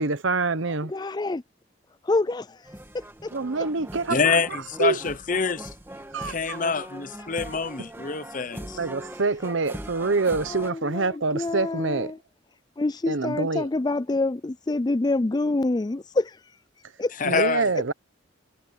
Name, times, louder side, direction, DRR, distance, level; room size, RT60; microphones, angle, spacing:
voice 1, 0.0-0.9 3.3-4.4 4.8-5.0 6.1-6.6 8.8-12.1 13.1-13.7 17.2-17.9, right 3 dB, 65° right, 0.9 m, -26 dB
voice 2, 0.9-1.4 2.0-2.6 3.2-3.3 10.5-12.2 12.8-16.4 17.0-17.1, left 2 dB, 20° left, 0.4 m, -26 dB
sound 1, 2.6-10.7, right 1 dB, 10° right, 1.6 m, -41 dB
voice 3, 4.1-5.7 6.2-8.8 17.2-17.7, left 5 dB, 40° left, 0.8 m, -26 dB
head